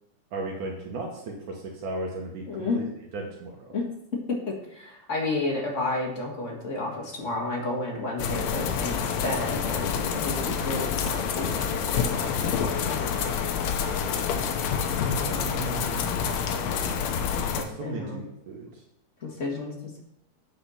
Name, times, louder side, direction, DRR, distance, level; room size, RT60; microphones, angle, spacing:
voice 1, 0.3-3.8 15.1-16.6 17.6-18.8, right 3 dB, 70° right, -1 dB, 2.6 m, -36 dB
voice 2, 2.5-2.8 3.7-3.9 4.3-11.5 11.9-13.3 17.8-18.2 19.2-20.0, left 2 dB, 30° left, -1 dB, 1.5 m, -31 dB
sound 1, 8.2-17.6, left 7 dB, 70° left, 1.8 m, -27 dB
8.9 x 5.7 x 5.7 m, 0.78 s
omnidirectional pair, 3.7 m